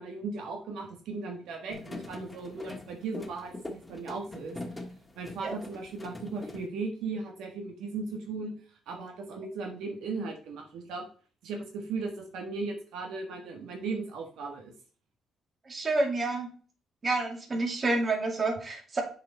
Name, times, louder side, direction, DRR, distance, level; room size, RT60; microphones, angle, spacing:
voice 1, 0.0-4.6 5.2-8.5 8.9-11.1 11.4-14.7, right 4 dB, 85° right, 2 dB, 1.4 m, -37 dB
sound 1, 1.7-6.7, left 2 dB, 15° left, 1.5 m, -43 dB
voice 2, 15.7-16.5 17.0-19.0, right 2 dB, 35° right, 2 dB, 2.2 m, -29 dB
6.8 x 4.9 x 4.1 m, 0.42 s
cardioid pair, 90°, 0 cm